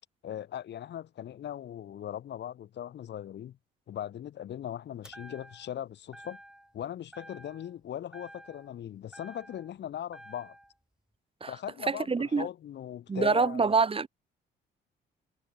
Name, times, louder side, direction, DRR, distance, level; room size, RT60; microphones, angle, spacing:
voice 1, 0.2-3.6 3.9-6.4 6.7-10.6 11.5-13.7, left 10 dB, 60° left, 1.1 m, -39 dB
sound 1, 5.0-5.8 6.1-6.8 7.1-7.8 8.1-9.8 10.1-10.7, equal, 5° right, 6.6 m, -51 dB
voice 2, 11.9-12.5 13.1-14.1, right 4 dB, 30° right, 1.3 m, -26 dB
cardioid pair, 90°, 20 cm